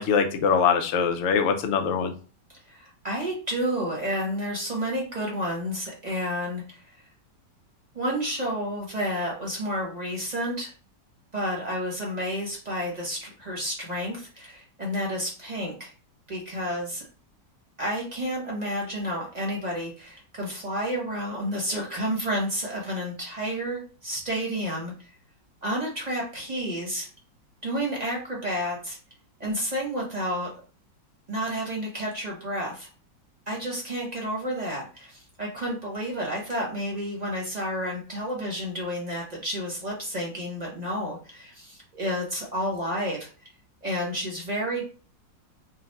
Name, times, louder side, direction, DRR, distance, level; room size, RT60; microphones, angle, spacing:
voice 1, 0.0-2.1, left 6 dB, 75° left, 5 dB, 0.7 m, -23 dB
voice 2, 2.7-7.0 7.9-10.7 11.3-15.9 16.3-17.0 17.8-24.9 25.6-27.1 27.6-29.0 29.4-30.5 31.3-32.9 33.5-43.3 43.8-44.8, equal, 30° right, -2 dB, 0.9 m, -30 dB
3.9 x 2.2 x 4.1 m, 0.37 s
omnidirectional pair, 2.0 m